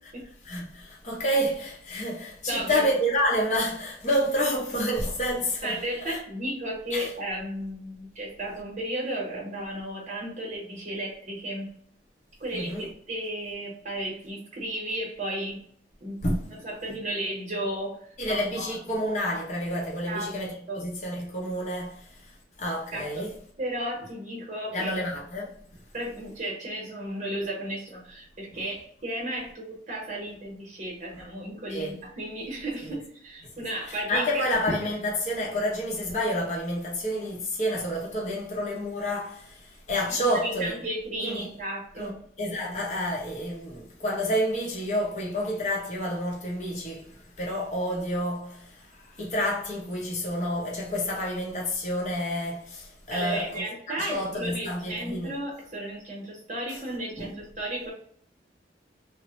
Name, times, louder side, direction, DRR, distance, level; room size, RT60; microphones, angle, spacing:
voice 1, 0.4-6.2 6.9-7.1 12.5-12.9 16.2-16.6 18.2-22.3 22.6-23.3 24.7-25.5 31.7-32.0 32.8-33.0 33.6-40.7 41.2-41.5 42.0-42.1 42.4-55.3 56.7-56.8 57.2-57.3, equal, 40° left, 0.7 m, -29 dB
voice 2, 2.5-2.9 5.6-11.7 12.4-15.6 16.0-16.2 16.4-18.7 20.1-20.3 20.7-20.8 22.9-23.3 23.6-24.9 25.9-34.5 40.2-42.2 53.1-57.9, right 1 dB, 40° right, 0.8 m, -34 dB
3.0 x 2.0 x 2.8 m
head